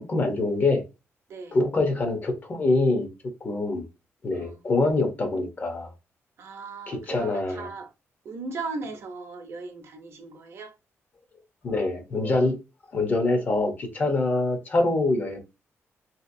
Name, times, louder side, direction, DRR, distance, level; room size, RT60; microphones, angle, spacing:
voice 1, 0.1-0.8 1.5-3.1 3.4-3.9 4.2-5.9 6.9-7.7 11.6-12.6 12.9-15.4, left 2 dB, 35° left, 0.7 m, -24 dB
voice 2, 6.4-7.9 8.2-10.7, right 3 dB, 60° right, 0.6 m, -37 dB
2.8 x 2.8 x 2.6 m
wide cardioid pair, 160°, 5 cm